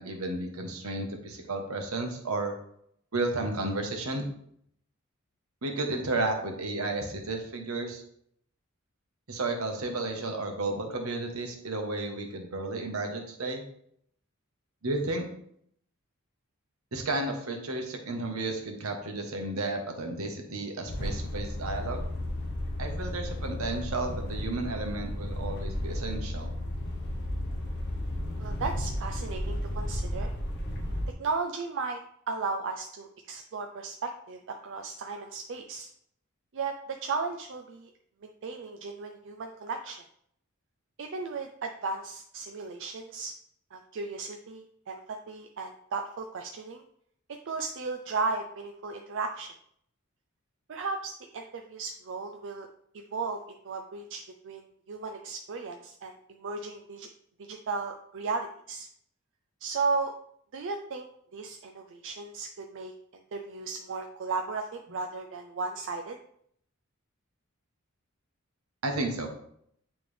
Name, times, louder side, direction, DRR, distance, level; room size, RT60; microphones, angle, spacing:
voice 1, 0.0-2.5 3.1-4.3 5.6-8.0 9.3-13.6 14.8-15.2 16.9-22.0 22.8-26.5 68.8-69.3, right 2 dB, 80° right, 3 dB, 1.2 m, -32 dB
sound 1, 20.9-31.1, left 1 dB, 50° left, 1.0 m, -33 dB
voice 2, 28.4-30.3 31.2-32.0 32.3-35.9 36.5-36.7 37.0-37.9 38.2-40.0 41.0-43.3 43.7-46.8 47.5-49.5 50.7-52.7 52.9-57.1 57.4-58.9 59.6-60.1 60.5-61.1 61.3-62.9 63.3-66.2, right 4 dB, 60° right, 4 dB, 0.5 m, -35 dB
8.9 x 3.4 x 3.3 m, 0.69 s
head